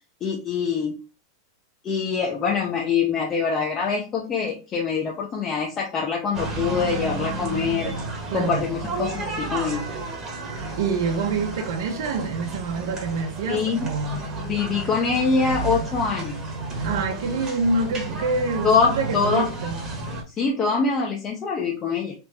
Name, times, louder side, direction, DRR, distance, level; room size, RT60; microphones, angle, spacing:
voice 1, 0.2-1.0 1.8-7.9 8.3-9.9 13.5-13.9 14.5-16.4 18.6-19.5 20.4-22.1, left 5 dB, 25° left, 0.6 m, -24 dB
sound 1, 6.3-20.2, right 2 dB, 20° right, 1.1 m, -32 dB
voice 2, 8.3-8.7 10.8-14.3 16.8-19.8, right 4 dB, 70° right, 0.9 m, -26 dB
3.4 x 2.9 x 3.3 m
supercardioid pair, 150°, 2 cm